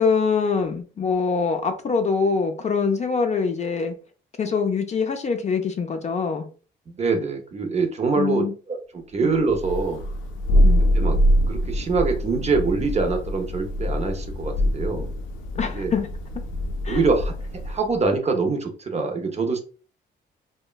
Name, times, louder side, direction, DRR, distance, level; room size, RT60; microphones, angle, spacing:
voice 1, 0.0-3.9 4.4-6.5 8.2-8.5 10.6-10.8 15.6-16.1 16.8-17.0, left 5 dB, 35° left, 6 dB, 0.4 m, -24 dB
voice 2, 6.9-10.0 10.9-11.2 11.5-15.0 15.7-15.9 16.9-17.3 17.6-19.6, right 4 dB, 35° right, 5 dB, 0.6 m, -24 dB
Thunder, 9.5-17.9, equal, 85° left, 0.5 m, -24 dB
2.9 x 2.1 x 2.2 m, 0.37 s
cardioid pair, 90°, 20 cm